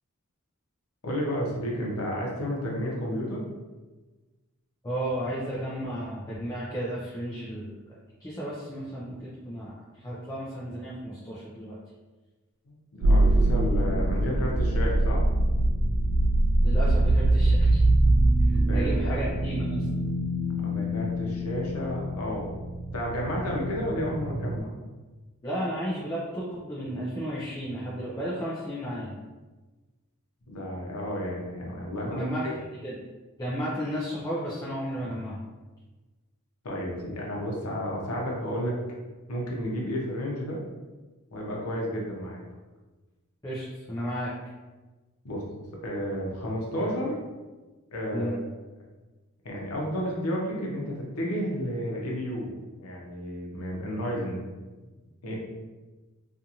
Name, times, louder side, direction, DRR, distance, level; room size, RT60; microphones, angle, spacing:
voice 1, 1.0-3.4 12.7-15.2 18.5-19.2 20.6-22.5 22.9-24.7 30.5-32.5 36.6-38.8 39.3-40.6 41.3-42.4 45.2-45.4 45.7-47.2 47.9-48.4 49.4-52.5 52.8-54.4 55.2-55.4, equal, 75° left, -2 dB, 0.7 m, -31 dB
voice 2, 4.8-7.8 8.2-9.7 10.0-11.8 16.6-17.8 18.7-19.8 25.4-29.1 32.0-32.5 32.8-33.0 33.4-35.4 43.4-44.3 48.1-48.4, equal, 15° left, -8 dB, 0.4 m, -33 dB
sound 1, 13.0-24.6, right 1 dB, 65° right, 0.3 m, -24 dB
2.5 x 2.5 x 2.8 m, 1.2 s
head